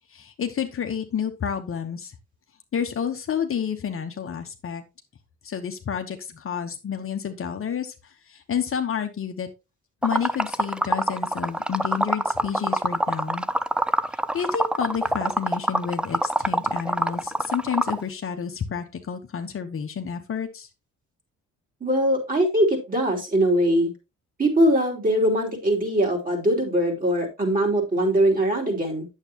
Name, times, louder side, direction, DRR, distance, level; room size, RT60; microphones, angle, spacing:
voice 1, 0.1-2.1 2.7-4.8 5.4-9.5 10.0-13.5 14.3-20.7, left 7 dB, 45° left, 6 dB, 1.1 m, -30 dB
Liquid, 10.0-18.0, right 1 dB, 5° right, 0.4 m, -25 dB
voice 2, 21.8-23.9 24.4-29.1, right 1 dB, 30° right, 1 dB, 3.4 m, -21 dB
8.8 x 7.3 x 2.9 m, 0.27 s
cardioid pair, 90°, 30 cm